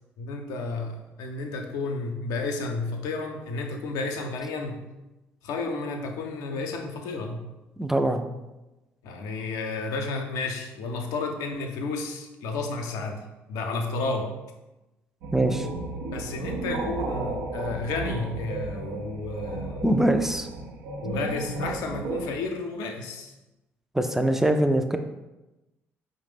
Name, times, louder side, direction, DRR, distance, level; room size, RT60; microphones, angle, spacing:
voice 1, 0.2-4.8 5.4-7.4 9.0-14.3 16.1-19.8 21.0-23.3, left 3 dB, 70° left, 3 dB, 0.5 m, -32 dB
voice 2, 7.8-8.2 15.3-15.7 19.8-20.5 23.9-25.0, right 1 dB, 5° right, 7 dB, 0.4 m, -23 dB
sound 1, 15.2-22.3, right 2 dB, 75° right, 0.5 m, -33 dB
4.8 x 2.0 x 3.4 m, 1.0 s
hypercardioid pair, 50°, 6 cm